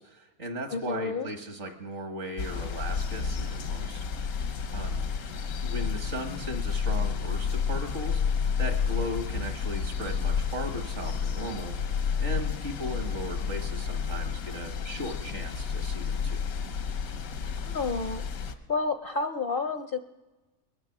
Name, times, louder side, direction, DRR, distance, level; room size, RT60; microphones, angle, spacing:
voice 1, 0.0-4.0 4.7-5.0 5.6-11.9 12.2-16.4, equal, 55° right, 5 dB, 1.9 m, -37 dB
voice 2, 0.7-1.3 17.6-18.2 18.7-20.0, left 4 dB, 55° left, 8 dB, 0.6 m, -30 dB
sound 1, 2.4-18.5, left 6 dB, 90° left, 1.4 m, -31 dB
21.0 x 11.0 x 5.9 m, 1.2 s
omnidirectional pair, 1.5 m